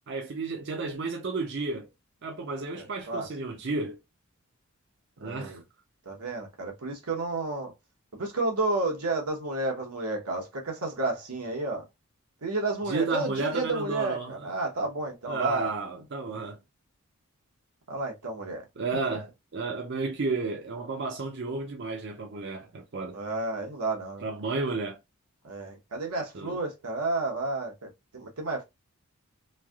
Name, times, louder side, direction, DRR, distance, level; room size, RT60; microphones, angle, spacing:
voice 1, 0.1-1.9 2.2-4.0 5.2-5.6 12.9-14.5 15.3-16.6 18.8-19.3 19.5-23.2 24.2-25.0 26.3-26.6, right 3 dB, 50° right, 0.5 m, -32 dB
voice 2, 2.7-3.3 5.2-5.6 6.1-7.7 8.1-11.8 12.4-15.7 17.9-18.6 23.1-24.2 25.4-28.6, right 2 dB, 90° right, 1.0 m, -31 dB
3.2 x 2.6 x 2.3 m
head